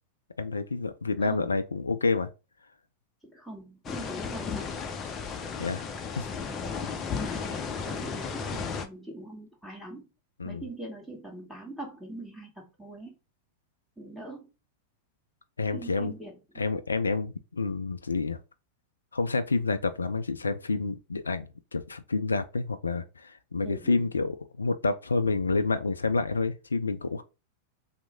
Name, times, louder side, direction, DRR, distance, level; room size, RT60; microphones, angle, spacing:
voice 1, 0.4-2.3 5.6-5.8 6.2-6.3 10.4-10.6 15.6-16.1 16.6-18.4 19.1-27.2, left 3 dB, 90° left, 0.3 m, -29 dB
voice 2, 1.3-1.6 3.2-4.8 6.5-6.8 7.2-10.0 10.4-13.1 14.0-14.5 15.7-16.6 23.6-24.1, right 1 dB, ahead, 1.6 m, -43 dB
sound 1, 3.8-8.9, left 5 dB, 30° left, 0.6 m, -34 dB
3.1 x 2.1 x 3.4 m
hypercardioid pair, 95°, 0 cm